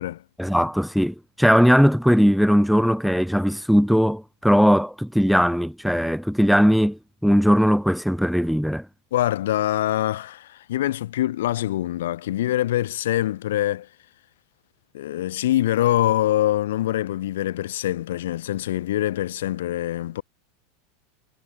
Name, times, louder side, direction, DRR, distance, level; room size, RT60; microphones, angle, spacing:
voice 1, 0.4-8.9, equal, ahead, 0.3 m, -19 dB
voice 2, 9.1-13.9 14.9-20.2, left 13 dB, 85° left, 1.8 m, -24 dB
supercardioid pair, 135°, 0 cm